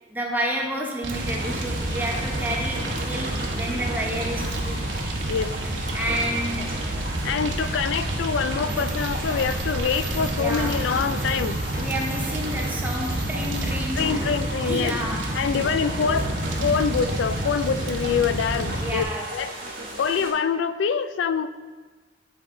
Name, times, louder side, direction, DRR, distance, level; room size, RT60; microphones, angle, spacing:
voice 1, 0.1-4.8 5.9-6.8 7.4-7.5 10.4-10.8 11.7-14.2 14.6-15.4 18.8-19.4, equal, 10° right, -1 dB, 0.9 m, -30 dB
Fire, 1.0-19.0, right 1 dB, 90° right, 0.9 m, -29 dB
sound 1, 1.1-20.3, right 1 dB, 50° right, 1.6 m, -35 dB
voice 2, 7.2-11.6 14.0-14.9 15.3-16.3 16.6-19.0 19.3-19.6 20.0-21.5, left 6 dB, 85° left, 12 dB, 0.3 m, -25 dB
sound 2, 8.7-14.4, right 2 dB, 35° right, 1.5 m, -42 dB
9.8 x 4.5 x 3.7 m, 1.3 s
head